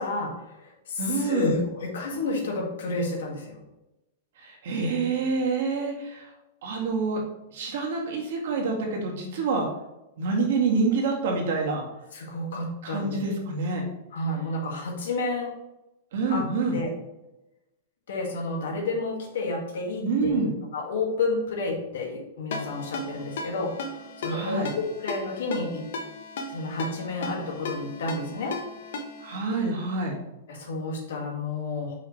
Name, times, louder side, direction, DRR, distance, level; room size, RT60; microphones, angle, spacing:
voice 1, 0.0-3.6 12.1-13.2 14.1-15.5 16.3-16.4 16.7-16.9 18.1-25.9 26.5-28.6 30.5-32.0, left 2 dB, 85° left, 0 dB, 2.1 m, -30 dB
voice 2, 1.0-1.5 4.4-6.3 6.6-7.2 7.5-9.7 10.2-11.8 12.8-13.8 16.1-16.8 20.0-20.5 24.2-24.7 29.2-30.2, right 4 dB, 60° right, -1 dB, 2.0 m, -27 dB
Ringtone, 22.5-29.4, left 3 dB, 65° left, 1.1 m, -36 dB
5.9 x 5.5 x 3.3 m, 0.95 s
supercardioid pair, 170°, 0 cm